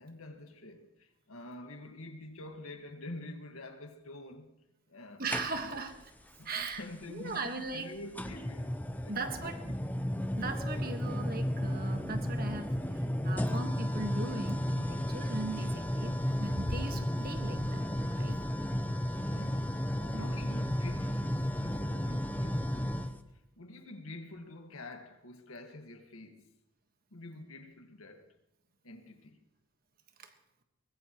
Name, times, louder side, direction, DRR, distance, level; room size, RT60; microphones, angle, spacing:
voice 1, 0.0-4.5 4.9-5.2 5.6-5.8 6.4-9.9 19.2-22.7 23.6-26.5 27.1-28.3 28.8-29.4, left 2 dB, 85° left, 1.7 m, -47 dB
voice 2, 5.2-6.0 6.4-6.8 7.1-7.9 9.1-9.6 10.4-18.4 20.0-20.3 30.2-30.3, right 3 dB, 45° right, 1.5 m, -39 dB
sound 1, 5.3-5.9 7.3-7.4 8.2-23.2, equal, 10° left, 0.6 m, -33 dB
23.0 x 20.0 x 3.1 m
head